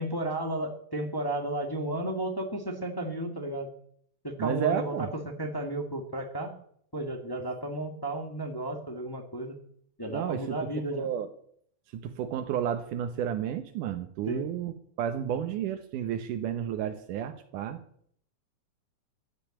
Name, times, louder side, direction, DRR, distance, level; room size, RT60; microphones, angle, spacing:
voice 1, 0.0-3.7 4.2-5.1 5.4-6.5 6.9-9.5 10.0-11.1 14.3-14.5, right 1 dB, 10° left, 4 dB, 1.0 m, -33 dB
voice 2, 4.4-5.1 10.1-10.6 10.9-11.3 11.9-17.8, right 9 dB, 80° right, 7 dB, 2.5 m, -31 dB
15.0 x 9.2 x 8.9 m, 0.64 s
omnidirectional pair, 3.6 m